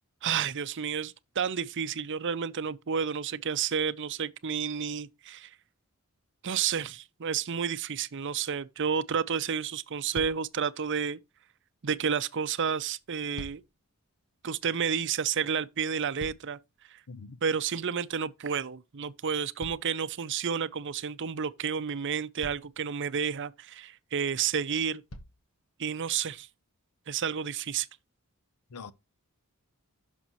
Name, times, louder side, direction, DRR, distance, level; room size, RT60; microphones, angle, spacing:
voice 1, 0.2-5.5 6.4-11.2 11.8-13.6 14.4-16.6 16.9-17.0 17.4-25.0 25.8-26.5 27.1-27.9, right 7 dB, 55° right, 0.6 m, -31 dB
sound 1, 10.1-10.6 13.0-13.8 15.7-16.8 19.6-20.6 21.8-21.9 22.4-22.9 24.3-24.4 25.1-25.5 26.3-26.4, left 1 dB, 65° left, 1.4 m, -46 dB
voice 2, 17.1-17.4 28.7-28.9, left 4 dB, 90° left, 0.8 m, -43 dB
11.5 x 6.1 x 3.0 m
head